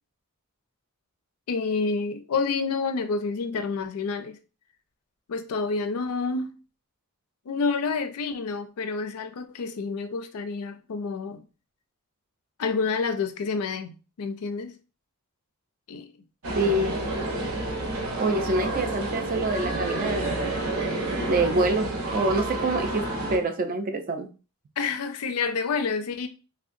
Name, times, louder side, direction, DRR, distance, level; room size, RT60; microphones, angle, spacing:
voice 1, 1.5-4.4 5.3-6.6 7.5-11.4 12.6-13.9 14.2-14.7 15.9-16.1 24.8-26.3, left 4 dB, 80° left, 0.4 m, -28 dB
sound 1, 16.4-23.4, right 2 dB, 65° right, 0.7 m, -29 dB
voice 2, 16.5-17.0 18.2-20.3 21.0-23.0 23.3-24.3, right 2 dB, 40° right, 0.4 m, -26 dB
3.3 x 2.7 x 2.5 m
head